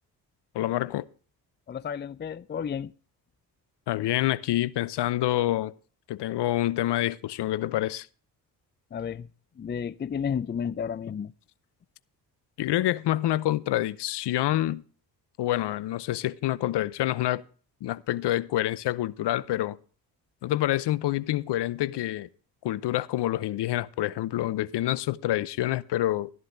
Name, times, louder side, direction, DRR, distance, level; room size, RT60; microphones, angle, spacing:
voice 1, 0.5-1.0 3.9-5.7 6.1-8.1 12.6-14.8 15.4-17.4 17.8-19.8 20.4-22.3 22.6-26.3, left 14 dB, 55° left, 0.8 m, -27 dB
voice 2, 1.7-2.9 8.9-9.3 9.6-11.3, left 7 dB, 20° left, 0.5 m, -32 dB
13.5 x 11.0 x 3.5 m
hypercardioid pair, 45°, 50 cm